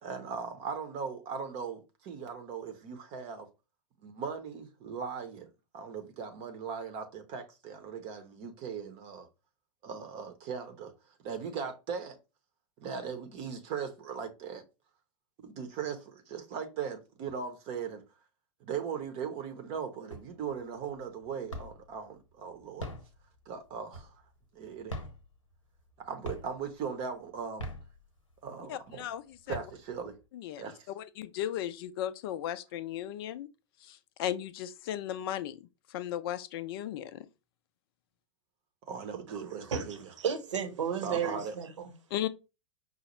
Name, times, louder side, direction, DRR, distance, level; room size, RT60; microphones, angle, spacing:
voice 1, 0.0-3.5 4.0-5.5 5.7-9.3 9.8-10.9 11.2-12.2 12.8-14.6 15.4-18.0 18.6-22.9 23.5-24.1 24.5-24.9 26.1-27.7 28.4-29.0 29.5-30.2 30.6-30.9 38.8-40.0 41.0-41.5, right 6 dB, 40° right, 0.7 m, -39 dB
sound 1, 20.1-20.6 21.0-22.0 22.6-24.4 24.8-25.9 26.2-26.8 27.4-28.5 29.0-29.1 29.3-30.2, equal, 85° left, 1.0 m, -42 dB
voice 2, 28.7-29.6 30.3-30.6 30.9-33.5 33.8-35.6 35.9-37.3 42.1-42.3, left 11 dB, 50° left, 0.4 m, -36 dB
voice 3, 39.3-41.9, right 7 dB, 70° right, 0.9 m, -34 dB
5.4 x 2.0 x 3.0 m
figure-of-eight pair, 95°, 16 cm